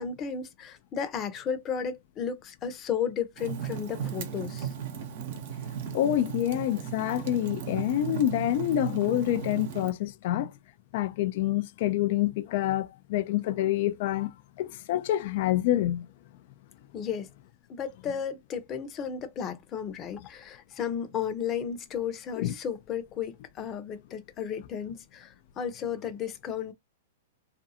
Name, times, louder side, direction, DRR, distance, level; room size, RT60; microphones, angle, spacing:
voice 1, 0.0-4.7 16.9-17.3 17.7-26.7, left 7 dB, 30° left, 0.7 m, -34 dB
Fire, 3.4-9.9, right 8 dB, 60° right, 0.8 m, -36 dB
voice 2, 5.9-10.5 10.9-14.3 14.6-16.1 22.4-22.5, left 13 dB, 55° left, 0.4 m, -27 dB
2.5 x 2.3 x 2.8 m
hypercardioid pair, 120°, 0 cm